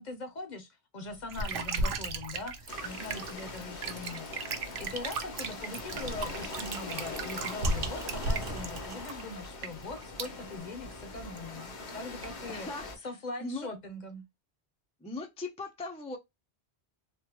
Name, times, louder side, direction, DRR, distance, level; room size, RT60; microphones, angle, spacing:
voice 1, 0.0-4.5 4.8-12.7 13.0-14.2, left 2 dB, 50° left, 0.7 m, -41 dB
sound 1, 1.1-10.4, equal, 90° right, 1.1 m, -38 dB
sound 2, 1.3-10.3 10.9-11.0 11.2-11.5 11.9-12.0 12.2-12.8, right 6 dB, 60° right, 0.7 m, -39 dB
sound 3, 2.7-13.0, left 3 dB, 80° left, 1.1 m, -42 dB
voice 2, 12.5-13.7 15.0-16.2, left 2 dB, 10° left, 0.3 m, -39 dB
3.4 x 2.2 x 2.9 m
omnidirectional pair, 1.1 m